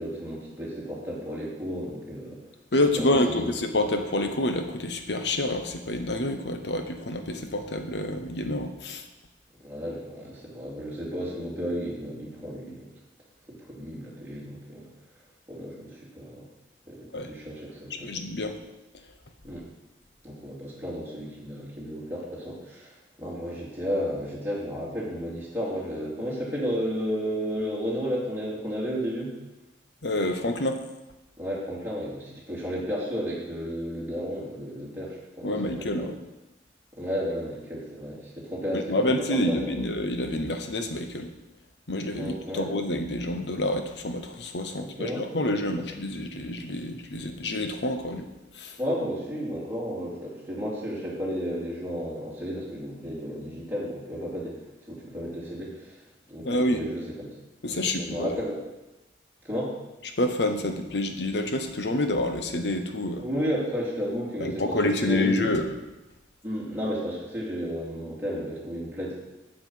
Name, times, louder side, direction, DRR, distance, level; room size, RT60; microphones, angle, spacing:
voice 1, 0.0-2.4 3.0-3.6 9.6-12.9 13.5-14.9 15.5-16.5 16.9-18.1 19.4-19.6 20.2-22.9 23.2-29.3 31.4-36.1 36.9-39.6 42.1-42.7 44.7-45.6 48.8-54.6 54.9-56.0 56.3-57.3 57.7-58.6 59.4-59.7 63.2-64.8 65.1-65.5 66.4-69.1, equal, 10° right, -7 dB, 2.7 m, -33 dB
voice 2, 2.7-9.0 17.1-17.3 18.0-18.6 30.0-30.8 35.4-36.2 38.7-41.3 41.9-48.3 48.5-48.8 56.4-56.8 57.6-58.4 60.2-63.2 64.4-65.8, left 1 dB, 70° left, 6 dB, 1.0 m, -28 dB
7.5 x 7.5 x 5.7 m, 1.0 s
head